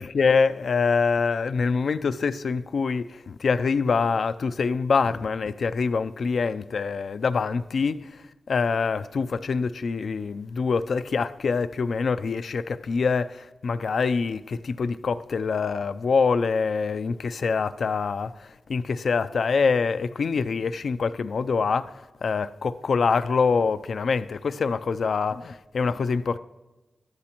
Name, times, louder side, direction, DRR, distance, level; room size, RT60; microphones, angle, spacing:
voice 1, 0.0-26.4, left 5 dB, 75° left, 0.4 m, -25 dB
20.5 x 13.5 x 3.0 m
cardioid pair, 55°, 0 cm